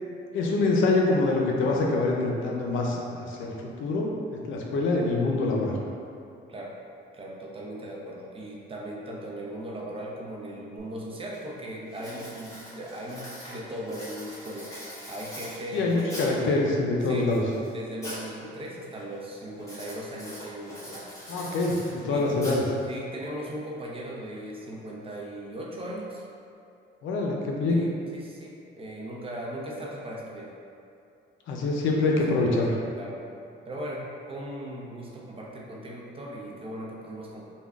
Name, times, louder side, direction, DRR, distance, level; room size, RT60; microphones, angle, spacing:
voice 1, 0.3-5.8 15.7-17.4 21.3-22.6 27.0-27.8 31.5-32.7, left 2 dB, 80° left, -1 dB, 0.5 m, -25 dB
voice 2, 7.1-14.7 15.1-16.4 17.1-17.3 17.7-21.1 22.1-22.5 22.9-26.2 27.7-30.5 32.1-32.6 33.0-33.2 33.7-37.5, right 1 dB, 30° right, -3 dB, 0.6 m, -38 dB
Writing, 10.8-10.9 11.3-11.6 11.9-16.5 17.0-18.3 18.6-19.0 19.6-23.0, equal, 15° left, 1.3 m, -42 dB
3.6 x 2.2 x 3.5 m, 2.6 s
cardioid pair, 90°, 20 cm